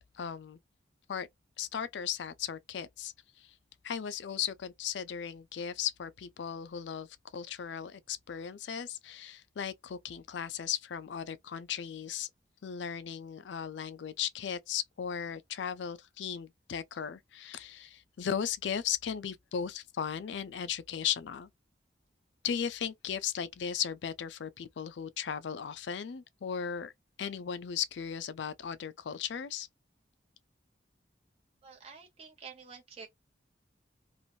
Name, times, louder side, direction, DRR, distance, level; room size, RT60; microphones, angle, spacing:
voice 1, 0.1-0.6 1.1-1.3 1.6-3.5 3.8-7.1 7.3-12.3 12.6-21.5 22.4-26.9 27.2-29.7, left 8 dB, 70° left, 0.4 m, -36 dB
voice 2, 31.6-33.1, right 5 dB, 35° right, 0.6 m, -49 dB
3.0 x 2.5 x 2.6 m
head